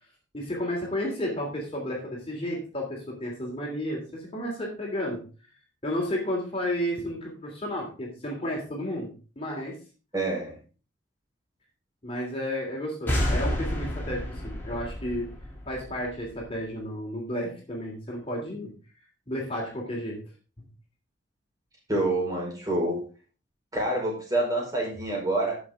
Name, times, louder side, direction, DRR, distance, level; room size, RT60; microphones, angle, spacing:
voice 1, 0.3-5.2 5.8-9.8 12.0-15.3 15.7-18.7 19.3-20.2, equal, 30° left, -2 dB, 3.0 m, -32 dB
voice 2, 10.1-10.5 21.9-23.0 23.7-25.6, right 1 dB, 20° right, -2 dB, 4.9 m, -27 dB
sound 1, 13.1-16.6, equal, 10° left, 3.2 m, -30 dB
12.5 x 7.2 x 3.7 m, 0.36 s
head